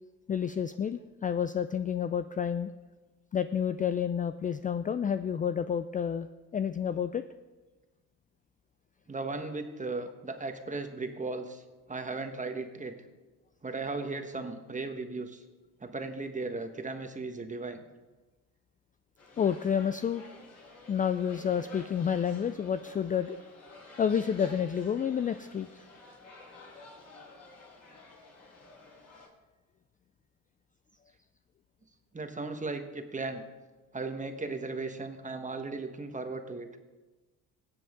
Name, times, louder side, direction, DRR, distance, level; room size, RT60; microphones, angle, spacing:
voice 1, 0.3-2.7 3.3-7.2 19.4-20.2 20.9-23.4 24.0-25.8, left 8 dB, 25° left, 11 dB, 0.3 m, -30 dB
voice 2, 9.1-11.6 11.9-13.0 13.6-15.4 15.8-17.8 32.1-33.4 33.9-36.7, right 3 dB, 20° right, 6 dB, 1.3 m, -36 dB
sound 1, 19.2-29.3, left 3 dB, 50° left, 4.5 m, -51 dB
17.5 x 7.6 x 3.7 m, 1.2 s
supercardioid pair, 75°, 35 cm